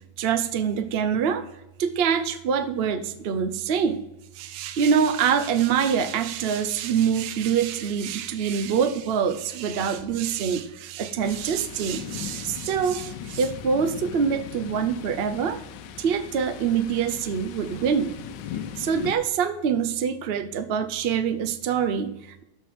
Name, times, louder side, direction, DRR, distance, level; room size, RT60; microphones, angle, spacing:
voice 1, 0.2-1.5 1.8-4.0 4.3-15.6 16.0-18.2 18.8-22.4, right 7 dB, 65° right, 10 dB, 0.6 m, -25 dB
Thunder, 11.2-19.2, left 9 dB, 85° left, 1.3 m, -39 dB
13.0 x 4.4 x 5.9 m, 0.90 s
omnidirectional pair, 1.9 m